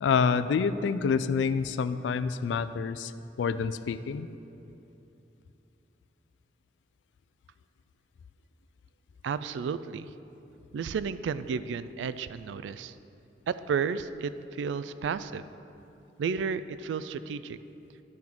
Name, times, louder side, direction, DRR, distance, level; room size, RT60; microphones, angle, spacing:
voice 1, 0.0-3.1 3.4-4.3, left 5 dB, 85° left, 13 dB, 0.3 m, -27 dB
voice 2, 9.2-10.1 10.7-12.9 13.5-15.5 16.2-17.6, right 6 dB, 90° right, 14 dB, 0.3 m, -32 dB
10.5 x 3.6 x 6.0 m, 2.9 s
head